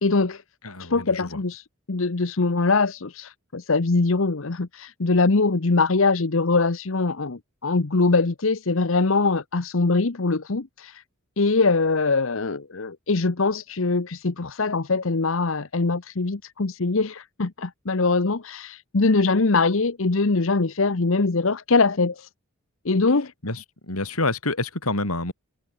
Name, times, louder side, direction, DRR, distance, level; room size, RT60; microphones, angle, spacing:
voice 1, 0.0-0.4 0.8-1.6 1.9-11.0 11.4-22.3 22.8-23.3, left 3 dB, 65° left, 0.9 m, -22 dB
voice 2, 0.6-1.4 23.4-25.3, left 2 dB, 90° left, 6.1 m, -28 dB
head